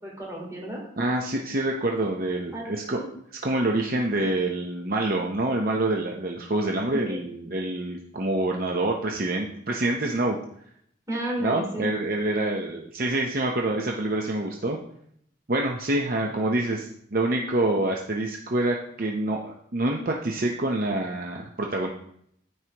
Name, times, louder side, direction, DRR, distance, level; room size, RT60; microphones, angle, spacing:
voice 1, 0.0-0.8 2.5-2.7 2.9-3.0 6.9-7.3 11.1-11.9, right 1 dB, 15° right, -4 dB, 3.1 m, -32 dB
voice 2, 1.0-3.0 3.4-10.4 11.4-14.8 15.5-21.9, right 2 dB, 50° right, 0 dB, 0.7 m, -26 dB
13.5 x 4.8 x 2.9 m, 0.69 s
head